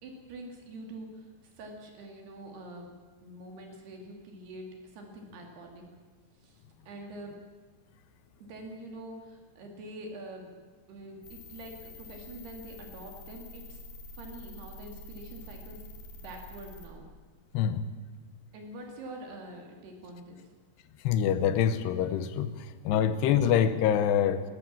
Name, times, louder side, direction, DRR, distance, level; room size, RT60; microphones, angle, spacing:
voice 1, 0.0-2.9 3.2-5.8 6.4-7.4 8.4-10.5 10.9-13.8 14.1-15.8 16.2-17.0 18.5-20.5, right 1 dB, 65° right, 2 dB, 4.5 m, -45 dB
sound 1, 11.2-16.9, left 1 dB, 55° left, 4.3 m, -47 dB
voice 2, 21.0-22.5 22.8-24.4, left 9 dB, 75° left, 12 dB, 3.0 m, -25 dB
20.0 x 17.5 x 7.5 m, 1.4 s
omnidirectional pair, 5.0 m